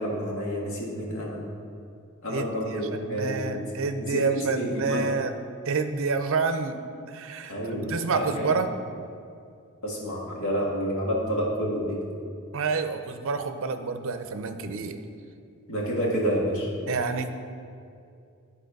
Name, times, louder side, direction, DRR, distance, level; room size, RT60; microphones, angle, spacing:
voice 1, 0.0-1.4 2.2-3.6 4.0-5.1 7.5-8.5 9.8-12.0 15.7-16.7, equal, 65° left, -4 dB, 2.1 m, -29 dB
voice 2, 2.3-5.3 5.6-6.8 7.1-8.7 12.5-15.0 16.9-17.3, right 4 dB, 65° right, 8 dB, 0.5 m, -28 dB
12.0 x 4.1 x 5.3 m, 2.5 s
head